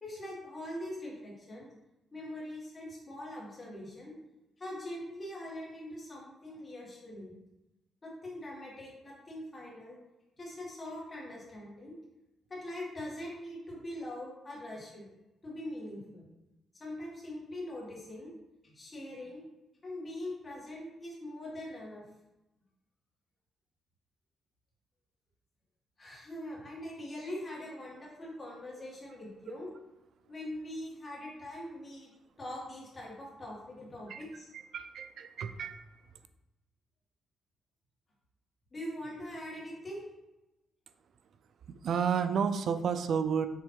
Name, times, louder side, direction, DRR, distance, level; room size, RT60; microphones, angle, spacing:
voice 1, 0.0-1.7 2.1-4.1 4.6-7.3 8.0-10.0 10.4-12.0 12.5-15.1 15.4-16.2 16.7-18.3 18.6-19.4 19.8-22.0 26.0-29.7 30.3-32.1 32.4-34.5 38.7-40.0, left 1 dB, 30° left, -4 dB, 2.1 m, -42 dB
voice 2, 34.5-35.8 41.7-43.5, right 7 dB, 60° right, 10 dB, 0.5 m, -31 dB
6.9 x 3.2 x 4.7 m, 0.98 s
cardioid pair, 125°, 0 cm